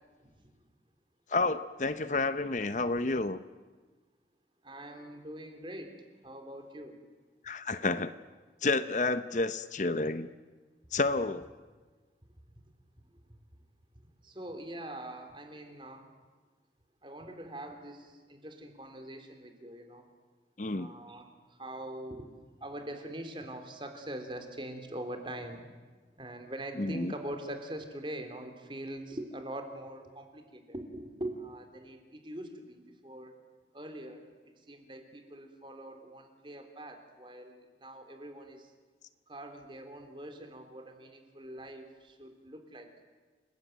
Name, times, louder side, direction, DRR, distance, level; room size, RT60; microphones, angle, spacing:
voice 1, 1.3-3.4 7.4-8.1 8.6-10.3 10.9-11.5 20.6-20.9 26.8-27.1, left 3 dB, 45° left, 12 dB, 0.8 m, -30 dB
voice 2, 4.6-6.0 6.2-7.0 14.2-16.1 17.0-20.0 20.7-22.3 22.6-25.6 26.1-33.3 33.7-34.2 34.7-38.7 39.3-42.9, right 1 dB, 30° right, 6 dB, 3.3 m, -43 dB
29.0 x 19.5 x 9.2 m, 1.3 s
head